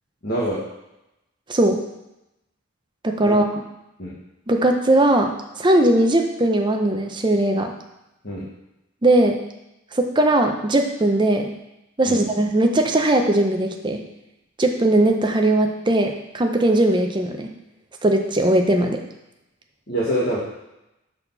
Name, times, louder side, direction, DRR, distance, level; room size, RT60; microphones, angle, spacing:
voice 1, 0.2-0.6 3.2-3.3 4.0-4.1 8.2-8.5 12.0-12.2 19.9-20.4, right 1 dB, 50° left, -8 dB, 1.4 m, -24 dB
voice 2, 1.5-1.8 3.0-3.6 4.5-5.3 5.6-7.7 9.0-9.4 9.9-11.5 12.0-14.0 14.6-17.5 18.0-19.0, right 1 dB, 20° right, 4 dB, 0.6 m, -19 dB
6.4 x 4.2 x 5.5 m, 0.92 s
head